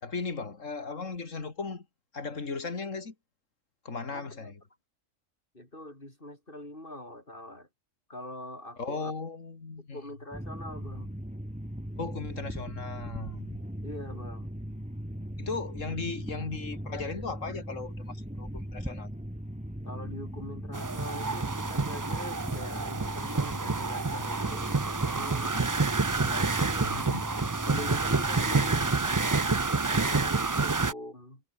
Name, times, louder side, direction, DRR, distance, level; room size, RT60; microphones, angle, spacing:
voice 1, 0.0-1.9 2.1-3.1 3.8-4.6 8.8-10.0 12.0-13.6 15.4-19.1 26.8-27.2, left 4 dB, 85° left, 2.9 m, -37 dB
voice 2, 4.1-4.5 5.5-7.7 8.1-9.1 9.9-11.1 13.8-14.5 19.8-25.7 26.2-27.0 27.7-31.4, left 1 dB, 45° left, 8.3 m, -43 dB
sound 1, 10.3-29.0, equal, 5° right, 3.1 m, -39 dB
sound 2, 20.7-30.9, right 3 dB, 25° right, 0.4 m, -28 dB
omnidirectional pair, 1.3 m